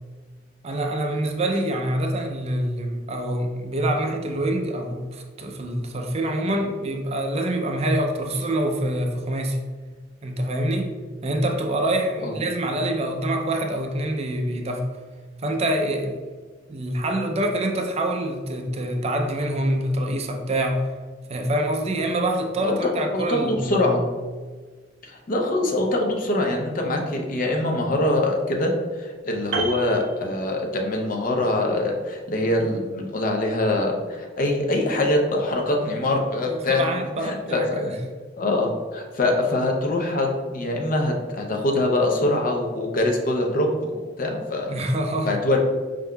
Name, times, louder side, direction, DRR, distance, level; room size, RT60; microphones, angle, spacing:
voice 1, 0.6-9.6 10.2-10.9 11.2-14.9 15.4-16.2 16.7-20.9 21.3-24.0 36.5-38.0 44.7-45.4, right 1 dB, 35° right, 3 dB, 0.4 m, -25 dB
voice 2, 22.6-24.0 25.0-36.8 37.2-38.0 38.4-44.8 45.2-45.6, left 1 dB, 45° left, 1 dB, 0.6 m, -24 dB
Piano, 29.5-31.0 31.2-31.5, right 4 dB, 80° right, 0.6 m, -31 dB
5.1 x 3.6 x 2.2 m, 1.4 s
head